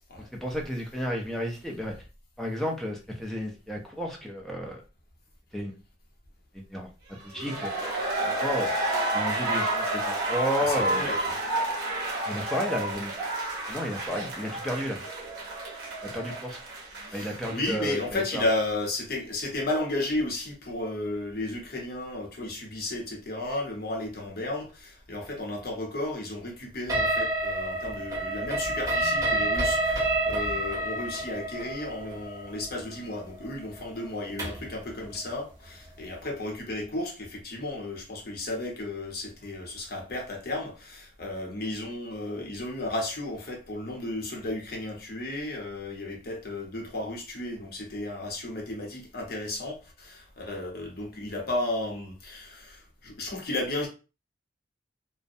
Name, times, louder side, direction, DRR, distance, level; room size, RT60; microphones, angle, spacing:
voice 1, 0.3-1.9 2.4-4.8 5.5-5.8 6.5-6.9 7.2-7.7 8.2-8.7 9.1-11.1 12.3-13.1 13.7-15.0 16.0-16.6 17.1-18.4, equal, ahead, 0.5 m, -32 dB
sound 1, 7.2-18.1 18.3-18.4, right 1 dB, 55° right, 0.9 m, -30 dB
voice 2, 10.6-11.4 17.1-53.9, left 2 dB, 55° left, 0.8 m, -33 dB
sound 2, 26.9-34.7, right 1 dB, 20° right, 1.0 m, -28 dB
2.4 x 2.1 x 2.6 m
head